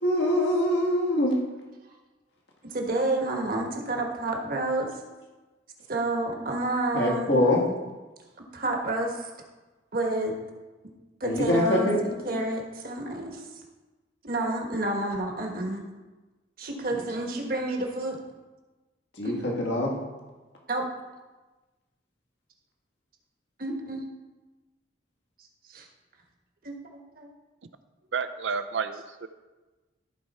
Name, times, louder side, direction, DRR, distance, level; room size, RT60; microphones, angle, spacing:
voice 1, 0.0-1.3 6.9-7.6 11.2-12.0 19.2-19.9, left 1 dB, 70° left, -1 dB, 1.7 m, -24 dB
voice 2, 2.7-4.9 5.9-7.4 8.5-9.3 9.9-10.3 11.2-13.5 14.2-15.8 16.6-18.2 19.2-19.3 20.7-20.8 23.6-24.0 25.7-25.9 26.6-27.3, right 2 dB, 50° right, 1 dB, 1.4 m, -29 dB
voice 3, 28.1-29.3, right 5 dB, 80° right, 10 dB, 0.6 m, -30 dB
14.5 x 4.9 x 4.2 m, 1.2 s
head